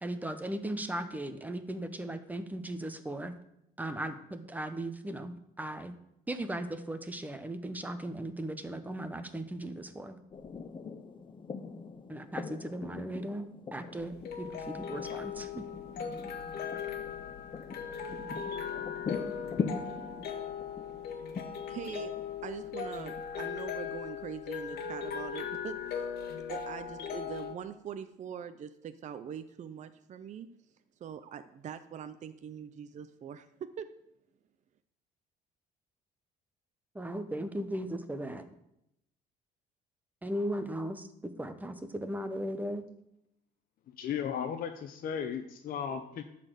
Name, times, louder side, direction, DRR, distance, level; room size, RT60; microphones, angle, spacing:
voice 1, 0.0-3.3 3.8-5.9 6.3-10.2 12.1-15.6 36.9-38.5 40.2-42.9, right 1 dB, 10° right, 9 dB, 1.1 m, -37 dB
sound 1, 10.3-23.4, left 5 dB, 30° left, 0.7 m, -42 dB
sound 2, 14.0-27.5, left 7 dB, 75° left, 1.4 m, -38 dB
voice 2, 20.6-22.1 22.4-26.1 26.3-30.5 31.0-33.9, right 8 dB, 45° right, 10 dB, 0.6 m, -43 dB
voice 3, 44.0-46.2, left 8 dB, 55° left, 5 dB, 0.8 m, -35 dB
11.5 x 4.3 x 7.7 m, 0.81 s
cardioid pair, 110°, 17 cm